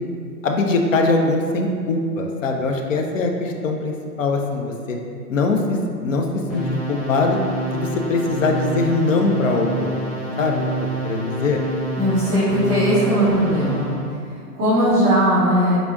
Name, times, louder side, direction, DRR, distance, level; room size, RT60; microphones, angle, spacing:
voice 1, 0.4-5.0 5.3-7.4 7.7-10.0 10.4-10.6 11.0-11.6, left 3 dB, 55° left, 2 dB, 0.6 m, -22 dB
sound 1, 6.5-14.1, right 1 dB, 25° left, 1.4 m, -27 dB
voice 2, 11.9-13.8 14.5-15.8, equal, 5° right, -26 dB, 0.3 m, -18 dB
4.9 x 3.6 x 2.4 m, 2.2 s
figure-of-eight pair, 120°, 48 cm